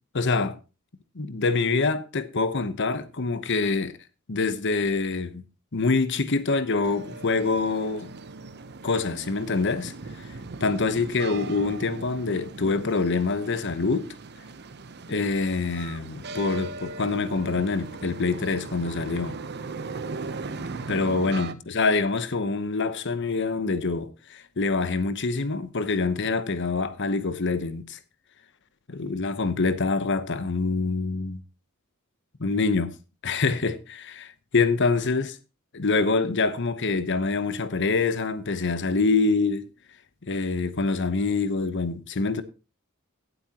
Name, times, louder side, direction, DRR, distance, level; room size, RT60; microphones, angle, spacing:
voice 1, 0.1-0.6 1.1-3.9 4.3-5.4 5.7-8.1 8.8-9.9 10.6-14.1 15.1-19.4 20.9-28.0 28.9-31.4 32.4-32.9 33.2-35.3 35.7-39.6 40.3-42.4, left 3 dB, 55° left, 0.9 m, -25 dB
sound 1, 6.8-21.5, right 3 dB, 50° right, 0.8 m, -39 dB
17.0 x 7.9 x 2.9 m
head